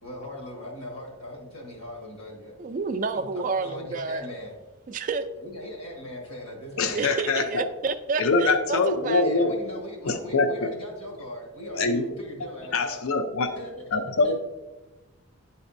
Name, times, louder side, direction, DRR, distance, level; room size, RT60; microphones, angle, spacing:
voice 1, 0.0-2.5 3.1-4.5 5.4-7.0 9.2-13.0 13.6-14.4, left 1 dB, 80° left, 0 dB, 1.7 m, -39 dB
voice 2, 2.6-4.3 4.9-5.3 6.9-9.2, right 4 dB, 35° right, 8 dB, 0.3 m, -29 dB
voice 3, 6.8-7.7 8.2-9.6 10.1-10.7 11.7-12.1 12.7-13.6 13.9-14.4, left 3 dB, 65° left, 7 dB, 0.4 m, -24 dB
10.5 x 4.1 x 2.6 m, 1.1 s
head